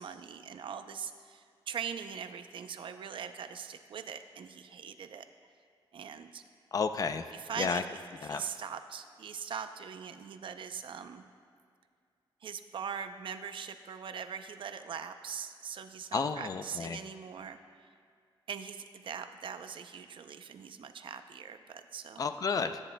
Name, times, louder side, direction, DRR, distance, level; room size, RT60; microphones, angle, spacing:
voice 1, 0.0-5.3 5.9-6.4 7.3-11.2 12.4-17.9 18.5-22.2, right 7 dB, 65° right, 9 dB, 0.6 m, -42 dB
voice 2, 6.7-7.3 7.6-7.8 8.2-8.4 16.1-17.0 22.2-22.8, left 5 dB, 40° left, 9 dB, 0.5 m, -31 dB
22.0 x 9.9 x 2.2 m, 2.2 s
wide cardioid pair, 165°, 9 cm